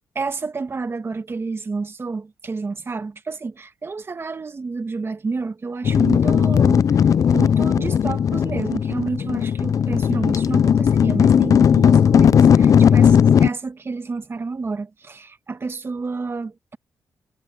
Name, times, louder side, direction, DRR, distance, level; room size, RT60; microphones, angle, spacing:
voice 1, 0.1-7.1 7.3-16.8, right 4 dB, 35° right, 1.5 m, -30 dB
sound 1, 5.8-13.5, left 8 dB, 50° left, 0.3 m, -16 dB
wide cardioid pair, 120°, 7 cm